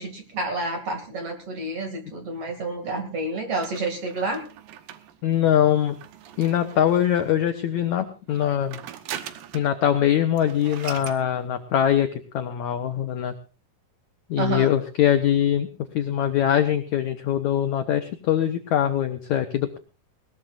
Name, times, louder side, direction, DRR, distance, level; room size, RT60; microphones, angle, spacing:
voice 1, 0.0-4.4 14.4-14.7, right 2 dB, 40° right, 4 dB, 3.0 m, -29 dB
sound 1, 3.6-7.3 8.3-9.8 10.1-10.2 10.4-11.2, right 10 dB, 70° right, 2.5 m, -41 dB
voice 2, 5.2-5.9 6.4-8.8 9.5-13.3 14.3-15.7 15.9-19.8, left 10 dB, 80° left, 7 dB, 1.6 m, -22 dB
20.5 x 19.0 x 2.5 m, 0.34 s
omnidirectional pair, 4.7 m